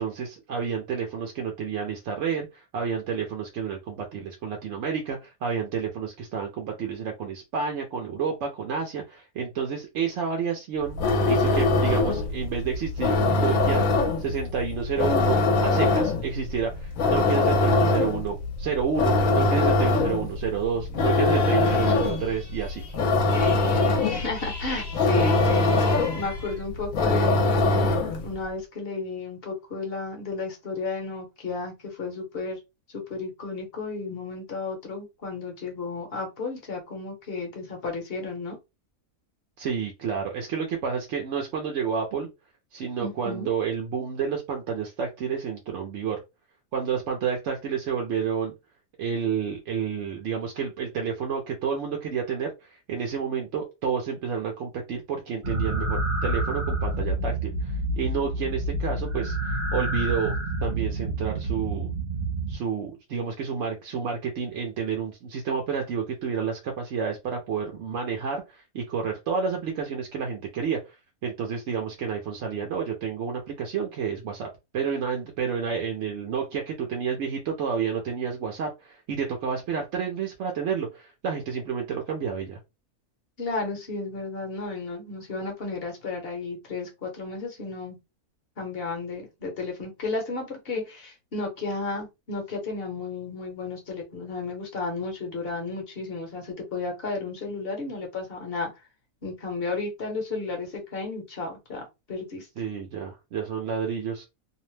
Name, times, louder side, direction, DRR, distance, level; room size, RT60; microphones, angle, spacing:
voice 1, 0.0-11.0 11.3-13.8 14.2-22.8 39.6-42.3 42.7-46.2 46.7-48.6 49.0-60.3 60.6-61.9 62.5-71.0 71.2-82.6 102.6-104.2, right 6 dB, 65° right, 1 dB, 0.8 m, -30 dB
sound 1, 10.8-28.3, left 2 dB, 70° left, 1.1 m, -23 dB
sound 2, 21.3-26.7, left 3 dB, 20° left, 0.7 m, -40 dB
voice 2, 21.6-22.1 24.0-32.6 32.9-38.6 43.0-43.5 83.4-88.0 88.6-98.7 99.2-102.5, left 3 dB, 45° left, 3 dB, 0.9 m, -33 dB
sound 3, 55.4-62.6, right 2 dB, 50° right, 1.1 m, -28 dB
2.7 x 2.0 x 3.1 m, 0.24 s
omnidirectional pair, 1.5 m